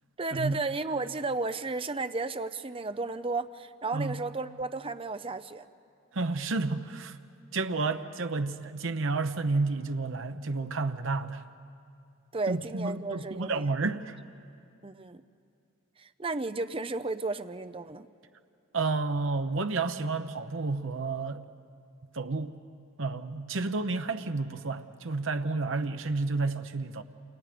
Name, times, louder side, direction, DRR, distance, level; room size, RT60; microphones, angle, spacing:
voice 1, 0.2-5.7 12.3-13.6 14.8-15.2 16.0-18.1, right 3 dB, 25° right, 0.6 m, -33 dB
voice 2, 6.1-7.2 7.5-11.4 12.5-14.2 18.7-21.5 22.1-22.6 23.0-27.0, right 3 dB, 65° right, 0.8 m, -31 dB
28.5 x 28.5 x 5.1 m
head